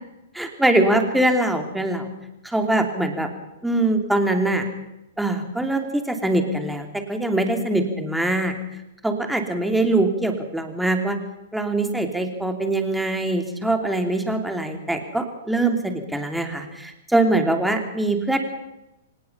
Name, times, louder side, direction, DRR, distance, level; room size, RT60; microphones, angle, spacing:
voice 1, 0.4-2.1 2.4-3.3 3.6-4.6 5.2-8.5 9.0-11.2 11.5-18.4, right 2 dB, 5° right, 5 dB, 3.0 m, -23 dB
25.0 x 19.0 x 5.6 m, 0.91 s
figure-of-eight pair, 110°, 0 cm